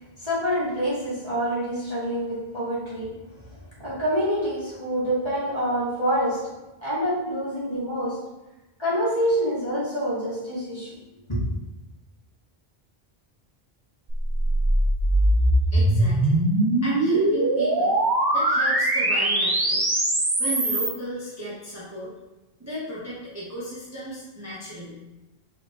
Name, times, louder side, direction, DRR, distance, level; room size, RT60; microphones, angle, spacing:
voice 1, 0.2-3.2 3.8-6.4 6.8-8.2 8.8-11.0 11.3-11.4, equal, 25° left, -9 dB, 1.4 m, -26 dB
sound 1, 14.1-20.9, right 1 dB, 30° right, 0.5 m, -21 dB
voice 2, 15.7-16.5 16.8-18.0 18.3-19.8 20.4-22.1 22.6-25.0, right 1 dB, 15° right, -8 dB, 0.9 m, -35 dB
4.9 x 3.0 x 2.9 m, 1.1 s
omnidirectional pair, 1.1 m